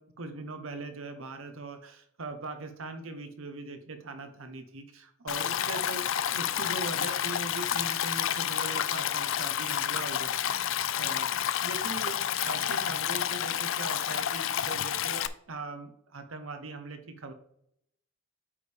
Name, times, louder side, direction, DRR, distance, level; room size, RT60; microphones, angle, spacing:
voice 1, 0.2-15.2 15.5-17.3, right 3 dB, 70° right, 7 dB, 0.9 m, -41 dB
Stream, 5.3-15.3, left 10 dB, 65° left, 0.4 m, -30 dB
8.5 x 5.2 x 3.4 m, 0.71 s
head